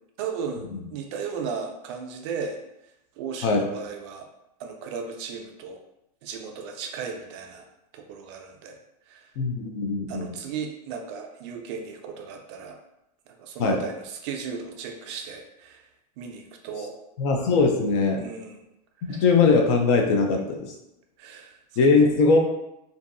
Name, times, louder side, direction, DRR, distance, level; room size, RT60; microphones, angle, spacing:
voice 1, 0.2-2.6 3.2-4.3 4.6-5.8 6.2-7.7 7.9-8.8 9.1-9.3 10.1-12.8 13.3-15.9 16.2-16.9 18.2-18.6 19.0-19.2 21.2-21.6, right 6 dB, 45° right, 3 dB, 0.4 m, -35 dB
voice 2, 9.4-10.3 13.6-13.8 17.2-18.2 19.2-20.7 21.8-22.4, left 4 dB, 50° left, 3 dB, 0.4 m, -20 dB
2.6 x 2.3 x 2.5 m, 0.86 s
supercardioid pair, 155°, 21 cm